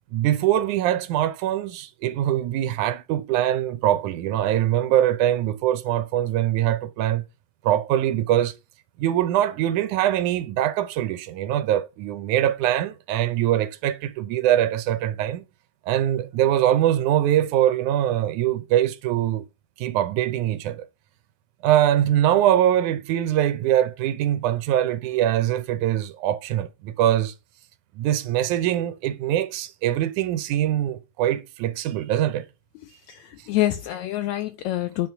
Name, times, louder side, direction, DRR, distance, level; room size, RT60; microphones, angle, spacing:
voice 1, 0.1-7.2 7.6-8.6 9.0-15.4 15.9-19.4 19.8-20.9 21.6-27.3 28.0-32.5, right 12 dB, 90° right, 2.3 m, -23 dB
voice 2, 32.8-35.1, left 14 dB, 75° left, 1.9 m, -27 dB
9.7 x 4.3 x 5.7 m
omnidirectional pair, 3.4 m